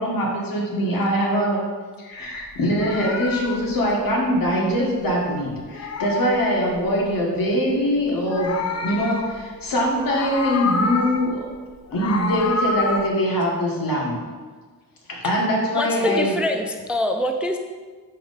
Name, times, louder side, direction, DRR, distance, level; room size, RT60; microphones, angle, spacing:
voice 1, 0.0-1.6 2.0-11.5 11.9-14.2 15.1-16.3, equal, 75° left, -2 dB, 1.4 m, -23 dB
Meow, 2.6-5.2 5.5-7.2 8.0-9.7 10.0-11.4 11.7-13.1, left 3 dB, 50° left, 0.6 m, -28 dB
voice 2, 15.7-17.6, left 1 dB, 5° right, 5 dB, 0.3 m, -24 dB
5.1 x 4.6 x 4.0 m, 1.5 s
wide cardioid pair, 100°, 35 cm